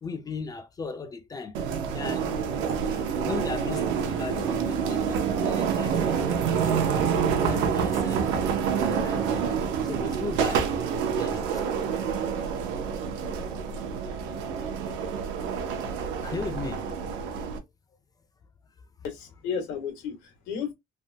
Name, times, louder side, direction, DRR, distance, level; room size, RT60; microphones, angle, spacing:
voice 1, 0.0-1.6 1.9-2.3 3.3-9.5 9.8-10.7 11.1-11.6 12.4-12.5 16.2-16.9, left 4 dB, 20° left, 0.3 m, -37 dB
sound 1, 1.5-17.6, right 7 dB, 85° right, 0.7 m, -27 dB
voice 2, 19.0-20.7, left 6 dB, 90° left, 1.4 m, -33 dB
3.3 x 2.1 x 2.7 m
cardioid pair, 150°, 19 cm